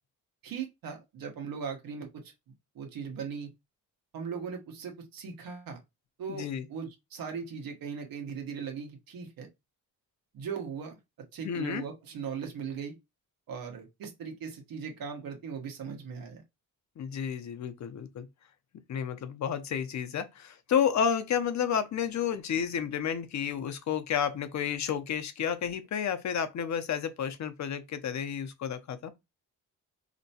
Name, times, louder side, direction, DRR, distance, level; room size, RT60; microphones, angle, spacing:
voice 1, 0.4-2.3 2.7-3.5 4.1-5.8 6.2-9.5 10.3-11.0 11.3-13.0 13.5-16.4, right 6 dB, 90° right, 1.2 m, -39 dB
voice 2, 6.3-6.7 11.4-11.8 17.0-18.3 18.9-29.1, left 8 dB, 55° left, 0.7 m, -31 dB
4.3 x 2.9 x 2.7 m
cardioid pair, 110°, 34 cm